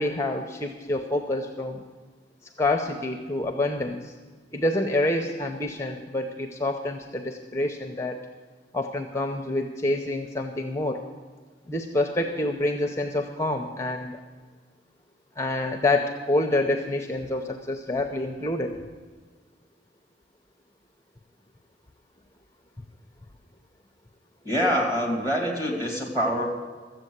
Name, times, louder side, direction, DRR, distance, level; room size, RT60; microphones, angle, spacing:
voice 1, 0.0-1.8 2.6-4.1 4.5-8.2 8.7-11.0 11.7-14.2 15.4-18.8, left 2 dB, 15° left, 4 dB, 0.7 m, -27 dB
voice 2, 24.4-26.5, equal, 20° right, 0 dB, 2.7 m, -25 dB
14.0 x 8.0 x 8.0 m, 1.5 s
head